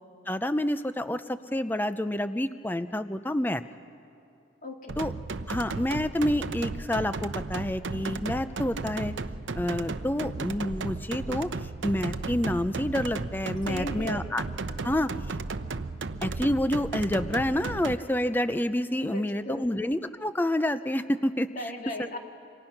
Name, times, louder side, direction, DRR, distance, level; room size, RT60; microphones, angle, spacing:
voice 1, 0.3-3.6 5.0-5.1 5.5-9.1 9.5-11.5 11.8-14.4 14.8-15.1 16.2-21.5, left 1 dB, 10° left, 11 dB, 0.5 m, -28 dB
voice 2, 4.6-5.0 13.7-14.2 19.0-19.6 21.6-22.2, left 1 dB, 45° left, 2 dB, 2.1 m, -36 dB
sound 1, 4.9-17.9, right 3 dB, 80° right, 0.7 m, -34 dB
27.5 x 25.5 x 5.9 m, 2.7 s
head